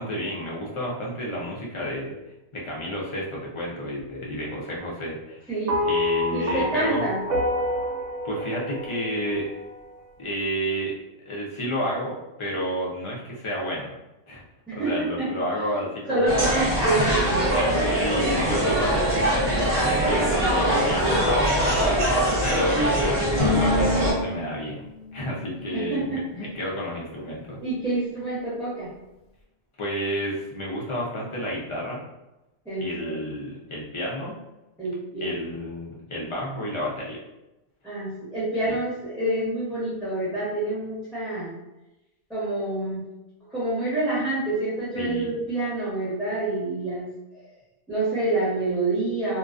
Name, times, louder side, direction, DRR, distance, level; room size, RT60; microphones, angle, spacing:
voice 1, 0.0-2.1 2.5-5.6 5.8-7.1 8.2-9.5 10.2-10.9 11.3-14.0 14.3-14.4 14.7-16.7 17.9-24.8 25.1-27.6 29.8-32.0 32.8-34.3 35.2-37.2 38.7-38.8 44.9-45.4, equal, 45° left, -4 dB, 0.4 m, -31 dB
sound 1, 5.7-10.1, left 1 dB, 80° right, 0.9 m, -28 dB
voice 2, 6.3-7.2 14.7-15.6 16.1-17.4 25.7-26.2 27.6-28.9 32.6-33.2 34.8-35.4 37.8-41.5 42.3-43.0 43.5-47.1 47.9-49.4, right 2 dB, ahead, -11 dB, 0.8 m, -27 dB
sound 2, 16.3-24.1, right 1 dB, 35° right, 0.7 m, -22 dB
Bowed string instrument, 23.4-26.6, left 3 dB, 65° left, 0.9 m, -30 dB
2.4 x 2.2 x 2.4 m, 0.97 s
omnidirectional pair, 1.2 m